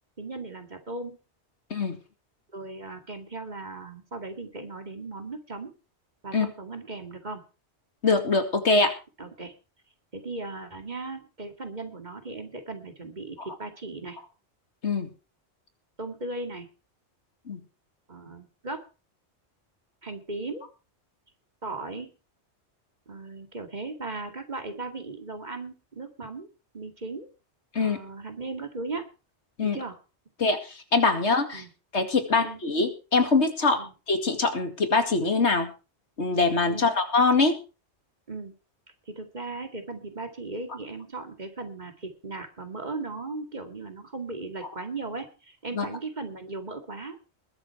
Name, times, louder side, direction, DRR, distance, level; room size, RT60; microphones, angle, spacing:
voice 1, 0.2-1.2 2.5-5.7 6.2-7.4 9.2-9.5 10.1-14.2 16.0-16.7 18.1-18.8 20.0-20.7 21.6-22.1 23.1-26.5 26.7-27.3 27.8-29.1 29.6-30.0 31.5-31.7 32.3-32.6 33.8-33.9 36.7-36.9 38.3-38.5 39.1-47.2, right 3 dB, 40° right, 5 dB, 2.4 m, -37 dB
voice 2, 8.0-8.9 14.8-15.1 17.5-17.6 27.7-28.0 29.6-29.8 30.4-31.6 31.9-35.7 36.2-37.6 45.7-45.8, left 3 dB, 85° left, 6 dB, 2.6 m, -23 dB
21.0 x 7.8 x 4.7 m, 0.33 s
omnidirectional pair, 1.1 m